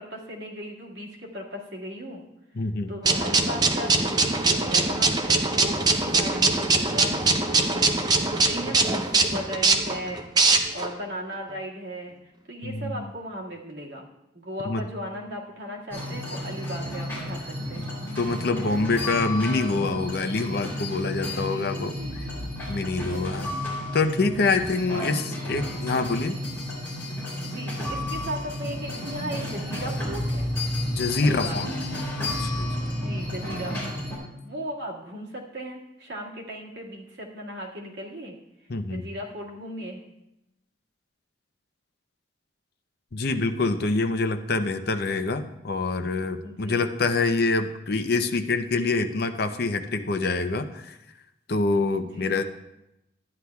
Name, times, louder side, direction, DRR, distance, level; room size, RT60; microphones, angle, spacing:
voice 1, 0.0-2.2 2.6-10.3 10.7-14.1 14.3-18.0 21.0-22.4 22.9-23.5 24.9-25.1 27.4-30.5 31.2-32.0 32.9-34.0 34.4-38.4 38.9-40.0 46.4-46.9 52.1-52.4, equal, 75° right, -2 dB, 1.8 m, -37 dB
voice 2, 2.6-2.9 8.5-8.6 12.6-13.1 14.6-14.9 17.8-17.9 18.2-22.0 22.7-23.5 23.9-26.4 30.9-31.7 32.4-32.9 38.7-39.0 43.1-51.0 51.5-52.4, left 3 dB, 55° left, 8 dB, 0.6 m, -26 dB
sound 1, 3.0-10.9, right 3 dB, 20° right, 0.6 m, -22 dB
sound 2, 15.9-34.2, left 1 dB, 15° left, 3.2 m, -32 dB
13.0 x 9.6 x 2.3 m, 0.90 s
head